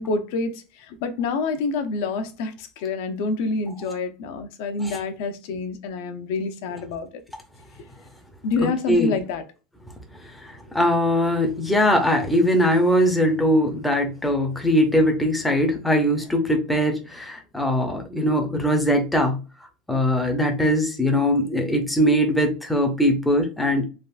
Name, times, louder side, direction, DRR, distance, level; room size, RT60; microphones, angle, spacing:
voice 1, 0.0-7.1 8.4-9.4, left 4 dB, 60° left, 0.5 m, -27 dB
voice 2, 8.6-9.1 10.4-19.4 19.9-23.8, equal, 5° left, 0.5 m, -21 dB
3.4 x 2.4 x 2.4 m
supercardioid pair, 175°, 0 cm